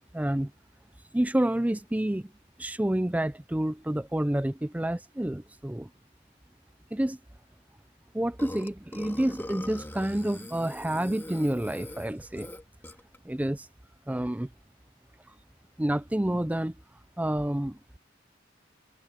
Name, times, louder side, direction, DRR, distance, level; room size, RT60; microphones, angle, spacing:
voice 1, 0.1-0.5 1.1-2.3 2.6-5.9 6.9-7.2 8.1-12.5 13.2-13.7 14.1-14.5 15.3-15.4 15.8-16.8 17.2-17.8, right 1 dB, 10° right, 0.5 m, -29 dB
Burping eructation, 8.4-13.2, left 1 dB, 10° left, 1.9 m, -42 dB
head